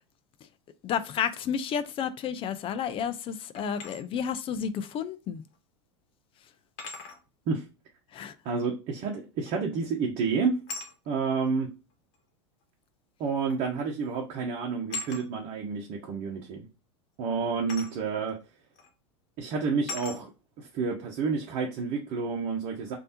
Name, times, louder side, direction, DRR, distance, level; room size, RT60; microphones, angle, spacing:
voice 1, 0.8-5.4 8.1-8.3, left 8 dB, 35° left, 0.4 m, -31 dB
sound 1, 3.5-4.0 5.5-5.6 6.8-7.2 9.5-9.8 10.7-10.9 12.1-12.2 13.5-13.7 14.0-14.3 14.9-15.3 17.7-18.0 18.8-18.9 19.9-20.2, left 4 dB, 50° left, 1.2 m, -39 dB
voice 2, 8.4-10.5 11.1-11.7 13.2-16.7 17.2-18.4 19.4-20.3 20.6-22.9, right 5 dB, 50° right, 0.9 m, -29 dB
3.2 x 2.7 x 2.8 m
hypercardioid pair, 100°, 16 cm